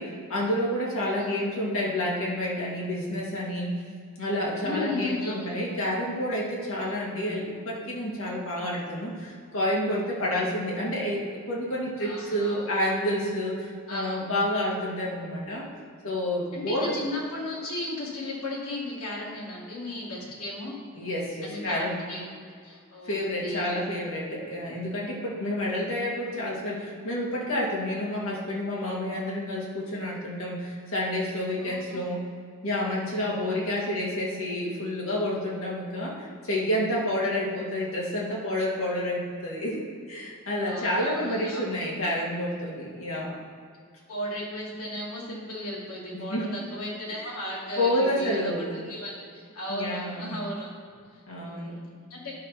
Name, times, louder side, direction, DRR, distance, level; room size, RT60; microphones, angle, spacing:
voice 1, 0.0-3.7 4.2-11.2 11.5-15.7 16.0-16.9 20.9-22.0 23.0-32.2 32.6-43.4 46.1-46.6 47.1-47.3 47.8-48.8 49.7-50.3 51.3-51.8, left 1 dB, 70° left, -4 dB, 2.5 m, -29 dB
voice 2, 4.6-5.5 12.0-12.6 13.9-14.2 16.5-20.7 21.4-23.8 31.6-32.0 33.4-33.6 40.6-41.6 44.1-48.5 48.8-50.7 51.4-51.8 52.1-52.3, left 1 dB, 85° left, -4 dB, 2.5 m, -35 dB
10.5 x 6.0 x 5.8 m, 2.3 s
head